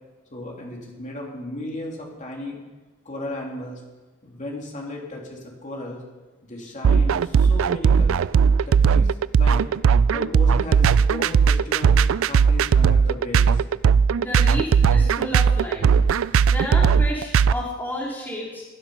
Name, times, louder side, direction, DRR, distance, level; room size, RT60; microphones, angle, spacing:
voice 1, 0.3-2.6 3.0-3.8 4.2-6.0 6.5-8.2 8.6-9.6 10.1-11.9 12.2-13.6, left 1 dB, 40° left, -1 dB, 2.9 m, -35 dB
sound 1, 6.8-17.5, right 6 dB, 80° right, 0.4 m, -17 dB
voice 2, 14.2-15.9 16.5-18.6, left 1 dB, 10° left, -4 dB, 2.4 m, -31 dB
15.5 x 12.0 x 5.4 m, 1.2 s
head